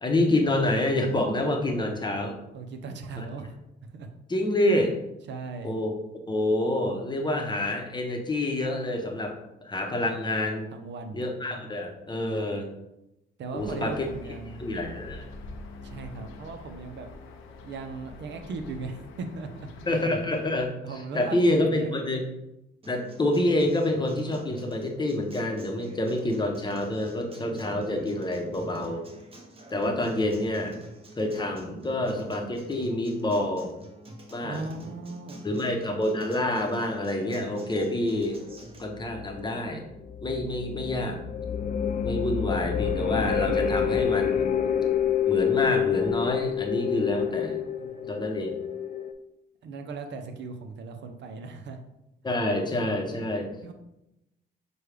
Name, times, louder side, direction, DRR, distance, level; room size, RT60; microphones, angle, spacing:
voice 1, 0.0-2.4 3.2-3.3 4.3-4.9 5.6-5.9 6.3-9.3 9.6-10.7 11.1-12.7 13.5-14.1 14.6-15.3 19.9-20.7 21.1-22.2 22.9-29.0 29.7-30.7 31.2-33.7 34.3-34.6 35.4-38.5 38.8-39.8 40.2-41.2 42.0-44.5 45.3-47.6 48.1-48.6 52.2-53.5, left 1 dB, 20° left, 2 dB, 0.8 m, -27 dB
voice 2, 2.5-3.6 3.8-4.1 5.3-5.7 10.7-11.3 13.4-14.7 15.8-17.1 17.6-19.7 20.8-21.9 34.4-35.8 47.8-48.1 49.6-51.8 53.6-53.7, right 4 dB, 65° right, 6 dB, 0.6 m, -38 dB
sound 1, 13.6-20.7, left 2 dB, 90° left, 0.6 m, -45 dB
Acoustic guitar, 22.8-38.8, right 1 dB, 30° right, 0.8 m, -48 dB
sound 2, 38.8-49.1, left 8 dB, 45° left, 0.5 m, -28 dB
6.2 x 2.3 x 3.3 m, 0.89 s
cardioid pair, 90°, 20 cm